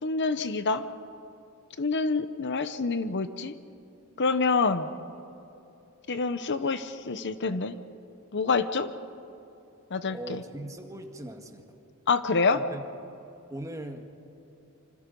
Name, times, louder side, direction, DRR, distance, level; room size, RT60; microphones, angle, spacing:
voice 1, 0.0-0.8 1.8-3.5 4.2-4.9 6.1-7.8 8.3-8.9 9.9-10.4 12.1-12.6, left 4 dB, 55° left, 11 dB, 0.9 m, -27 dB
voice 2, 10.1-11.8 12.5-12.8 13.5-14.1, right 1 dB, 15° right, 4 dB, 1.7 m, -40 dB
27.0 x 26.0 x 5.4 m, 2.9 s
head